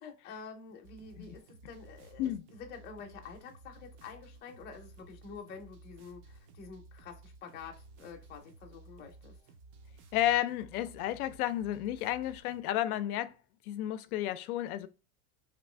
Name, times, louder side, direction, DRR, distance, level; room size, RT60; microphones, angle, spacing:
voice 1, 0.0-9.4, left 5 dB, 25° left, 0.5 m, -48 dB
sound 1, 0.8-12.6, right 3 dB, 35° right, 0.4 m, -55 dB
voice 2, 10.1-13.3 13.7-14.9, left 13 dB, 90° left, 0.5 m, -32 dB
3.0 x 2.5 x 3.1 m
supercardioid pair, 150°, 42 cm